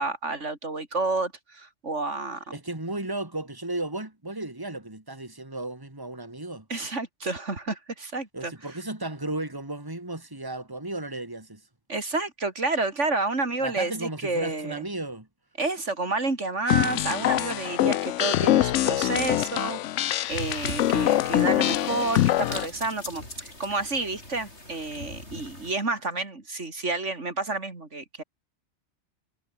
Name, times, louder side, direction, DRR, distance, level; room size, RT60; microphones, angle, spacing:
voice 1, 0.0-2.6 6.7-8.5 11.9-14.8 15.6-28.2, right 3 dB, 80° right, 3.8 m, -30 dB
voice 2, 2.5-6.7 8.3-11.6 13.6-15.3, right 2 dB, 20° right, 3.1 m, -34 dB
sound 1, 16.7-22.7, left 13 dB, 85° left, 0.9 m, -24 dB
sound 2, 20.3-25.8, left 1 dB, 65° left, 7.7 m, -41 dB
omnidirectional pair, 1.2 m